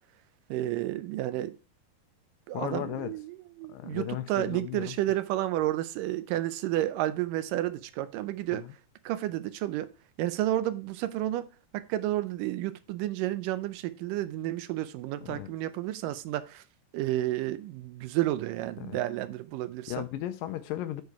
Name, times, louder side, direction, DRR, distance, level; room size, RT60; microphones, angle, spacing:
voice 1, 0.5-1.6 2.5-8.7 9.1-9.9 10.2-11.5 11.7-16.6 16.9-20.1, right 14 dB, 80° right, 2.1 m, -31 dB
voice 2, 2.5-3.1 3.7-5.0 8.5-8.7 15.2-15.5 18.8-19.0 19.9-21.0, left 13 dB, 80° left, 2.3 m, -36 dB
8.3 x 4.9 x 4.8 m
omnidirectional pair, 4.1 m